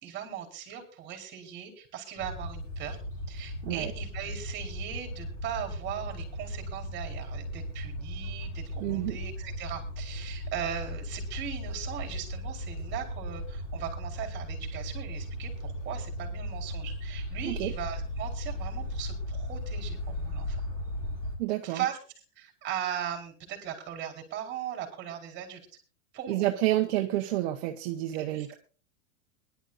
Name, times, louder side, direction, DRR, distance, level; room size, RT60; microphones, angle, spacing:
voice 1, 0.0-3.0 3.3-20.6 21.6-22.0 22.4-25.7 26.1-26.4 28.1-28.6, right 9 dB, 30° right, 2 dB, 4.6 m, -38 dB
sound 1, 2.2-21.4, equal, 20° left, 5.6 m, -36 dB
voice 2, 8.8-9.2 17.4-17.7 21.4-21.8 26.3-28.5, right 15 dB, 55° right, 3 dB, 1.3 m, -29 dB
22.0 x 12.0 x 2.6 m, 0.36 s
supercardioid pair, 150°, 38 cm